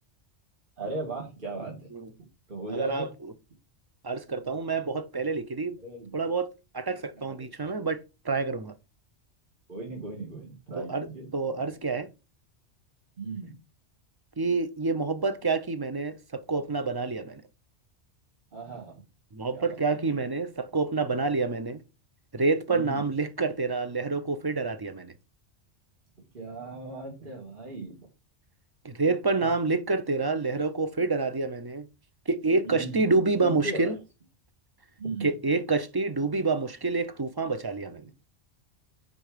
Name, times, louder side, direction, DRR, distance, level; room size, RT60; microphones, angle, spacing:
voice 1, 0.8-1.9 2.5-3.1 5.8-6.2 7.2-7.7 9.7-11.6 13.2-13.5 18.5-19.0 19.5-19.8 22.7-23.1 26.2-28.1 29.4-29.5 32.6-34.0 35.0-35.4, right 3 dB, 45° right, 2.2 m, -38 dB
voice 2, 2.7-3.1 4.0-5.8 6.1-6.5 6.7-8.7 10.7-11.1 11.3-12.1 14.4-17.4 19.3-21.8 22.3-25.1 28.8-31.9 32.3-34.0 35.2-38.1, right 3 dB, 25° right, 0.6 m, -28 dB
9.4 x 4.0 x 5.0 m
omnidirectional pair, 1.2 m